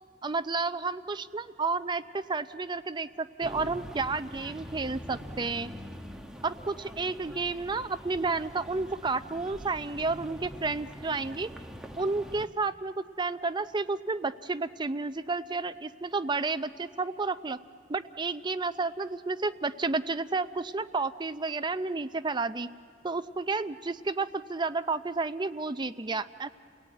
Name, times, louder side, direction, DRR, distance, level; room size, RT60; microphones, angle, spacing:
voice 1, 0.2-5.7 6.4-11.5 12.0-17.6 17.9-22.7 23.0-26.5, right 3 dB, 25° right, 11 dB, 0.5 m, -31 dB
sound 1, 3.4-12.5, equal, 5° right, 1.1 m, -44 dB
28.5 x 17.5 x 9.1 m, 2.3 s
head